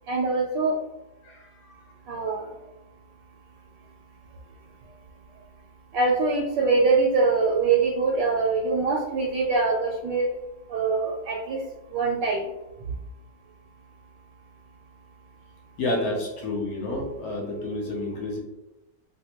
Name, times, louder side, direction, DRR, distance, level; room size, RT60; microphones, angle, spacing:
voice 1, 0.1-0.8 2.1-2.5 5.9-10.3 10.7-11.6 11.9-12.5, right 4 dB, 75° right, -1 dB, 1.2 m, -23 dB
voice 2, 1.2-1.8 15.8-18.4, left 2 dB, 60° left, -2 dB, 1.2 m, -30 dB
3.4 x 2.5 x 2.8 m, 0.95 s
omnidirectional pair, 2.0 m